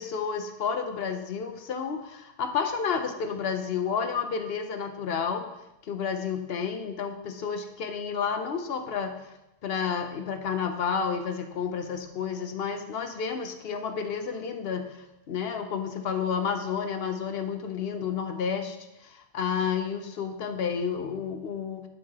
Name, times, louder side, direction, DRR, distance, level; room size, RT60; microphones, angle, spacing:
voice 1, 0.0-5.5 5.8-9.2 9.6-21.9, left 6 dB, 70° left, 7 dB, 0.9 m, -31 dB
11.0 x 4.7 x 2.9 m, 0.91 s
omnidirectional pair, 1.1 m